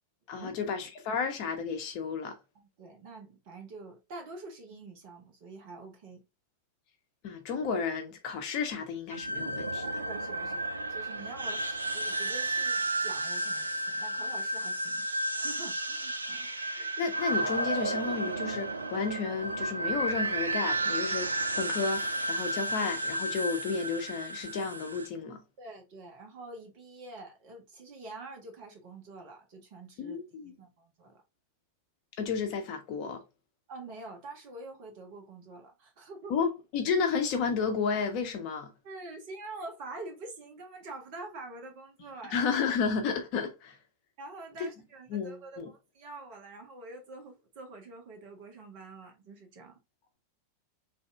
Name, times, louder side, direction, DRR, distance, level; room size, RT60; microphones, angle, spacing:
voice 1, 0.3-2.4 7.2-10.0 16.7-21.3 21.6-25.4 30.0-30.5 32.2-33.2 36.3-38.7 42.3-43.8 44.6-44.7 45.1-45.7, left 5 dB, 45° left, 1.0 m, -32 dB
voice 2, 2.5-6.2 10.0-16.5 25.6-31.2 33.7-36.4 38.8-42.4 44.2-49.8, right 2 dB, 45° right, 1.3 m, -46 dB
sound 1, 9.1-25.1, right 1 dB, 80° right, 0.4 m, -32 dB
3.5 x 2.7 x 3.3 m
figure-of-eight pair, 90°, 0 cm